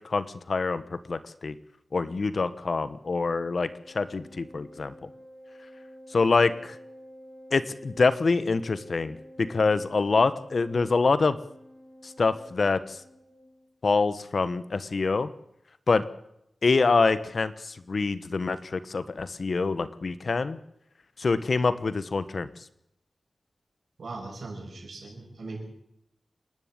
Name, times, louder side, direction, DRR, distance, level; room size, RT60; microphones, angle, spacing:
voice 1, 0.0-1.5 1.9-3.7 3.9-4.9 6.1-6.8 7.5-11.4 12.0-13.0 13.8-15.3 15.9-16.1 16.6-20.6 21.2-22.5, left 4 dB, 60° left, 14 dB, 1.2 m, -25 dB
Organ, 3.0-13.7, equal, 40° right, 7.0 m, -49 dB
voice 2, 24.0-25.6, right 3 dB, 85° right, 2 dB, 6.6 m, -39 dB
27.0 x 11.0 x 8.9 m, 0.78 s
wide cardioid pair, 105°, 0 cm